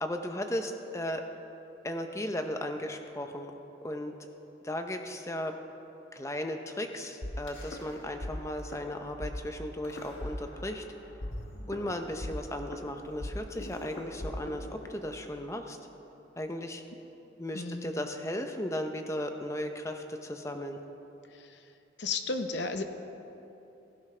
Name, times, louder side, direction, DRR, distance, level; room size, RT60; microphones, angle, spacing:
voice 1, 0.0-1.2 1.8-3.5 3.8-4.1 4.6-5.5 6.1-10.8 11.7-15.8 16.4-16.8 17.4-20.8, left 1 dB, 15° left, 5 dB, 0.7 m, -36 dB
sound 1, 7.2-8.3 8.6-8.8 9.2-9.3 9.8-10.8 11.2-15.2, left 1 dB, 90° left, 1.7 m, -40 dB
voice 2, 17.5-17.9 21.3-21.6 22.0-22.8, left 3 dB, 65° left, 7 dB, 0.9 m, -34 dB
17.0 x 15.5 x 3.3 m, 3.0 s
head